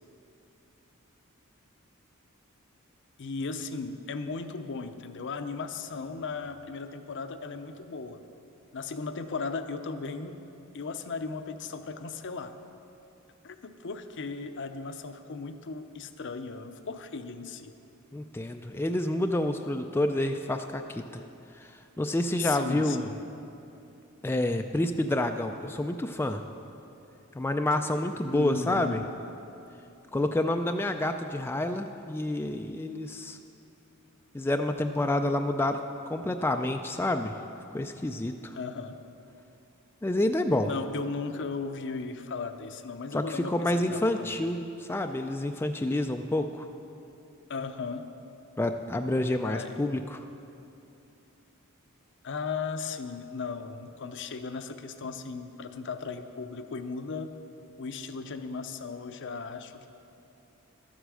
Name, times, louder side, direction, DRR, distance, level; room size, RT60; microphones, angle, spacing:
voice 1, 3.2-8.2 8.7-10.4 10.7-12.5 13.4-17.7 22.4-23.2 28.3-29.0 38.5-39.0 40.6-44.4 47.5-48.1 49.4-49.9 52.2-57.3 57.8-59.9, left 4 dB, 60° left, 8 dB, 0.6 m, -36 dB
voice 2, 18.1-21.0 22.0-23.1 24.2-26.4 27.4-29.0 30.1-33.4 34.3-35.8 36.1-37.3 37.7-38.5 40.0-40.7 43.1-46.7 48.6-50.2, left 1 dB, 10° left, 5 dB, 0.3 m, -28 dB
13.0 x 8.1 x 6.3 m, 2.8 s
head